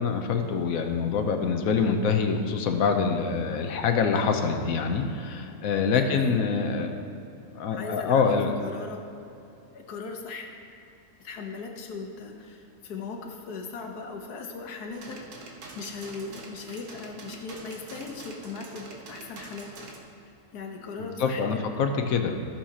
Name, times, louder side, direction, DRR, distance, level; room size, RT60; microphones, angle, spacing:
voice 1, 0.0-6.9 7.5-8.6 21.0-22.4, left 5 dB, 70° left, 5 dB, 1.1 m, -25 dB
voice 2, 6.0-6.4 7.7-8.3 8.6-9.0 9.7-10.5 11.2-19.7 20.2-21.7, left 4 dB, 90° left, 3 dB, 1.5 m, -38 dB
sound 1, 14.9-20.0, right 3 dB, 75° right, 1.5 m, -45 dB
14.5 x 7.2 x 2.8 m, 2.6 s
omnidirectional pair, 1.6 m